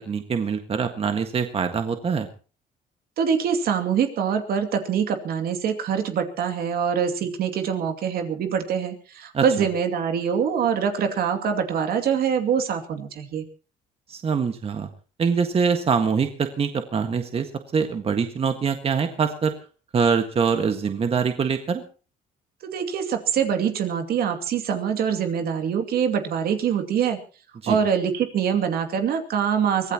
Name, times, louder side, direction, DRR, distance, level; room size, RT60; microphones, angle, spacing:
voice 1, 0.0-2.3 9.3-9.4 14.1-14.9 15.2-17.5 17.7-19.5 19.9-21.8 27.6-27.8, right 6 dB, 35° right, 6 dB, 1.7 m, -24 dB
voice 2, 3.2-13.4 22.6-27.2 27.7-29.9, right 7 dB, 65° right, 6 dB, 2.6 m, -24 dB
23.5 x 17.0 x 3.0 m, 0.37 s
cardioid pair, 110°, 17 cm